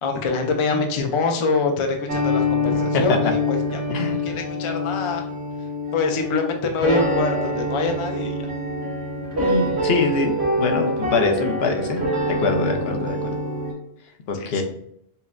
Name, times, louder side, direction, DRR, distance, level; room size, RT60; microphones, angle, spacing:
voice 1, 0.0-5.3 5.9-8.5 14.3-14.6, left 3 dB, 50° left, 4 dB, 0.4 m, -25 dB
sound 1, 2.1-13.7, left 1 dB, 70° right, 1.4 m, -25 dB
voice 2, 9.3-13.4 14.3-14.6, left 4 dB, 70° left, 4 dB, 0.8 m, -24 dB
5.5 x 2.1 x 2.4 m, 0.71 s
omnidirectional pair, 1.1 m